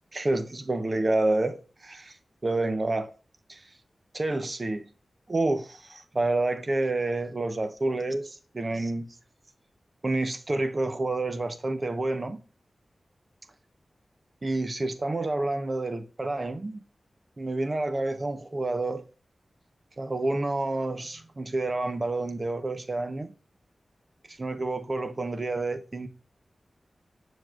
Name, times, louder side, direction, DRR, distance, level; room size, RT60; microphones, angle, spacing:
voice 1, 0.1-2.2 2.4-3.1 3.5-3.6 4.1-4.8 5.3-9.1 10.0-12.4 14.4-16.8 17.4-19.0 20.0-23.3 24.3-26.1, right 2 dB, 40° right, 0.9 m, -29 dB
7.1 x 6.2 x 2.4 m
wide cardioid pair, 75°, 0 cm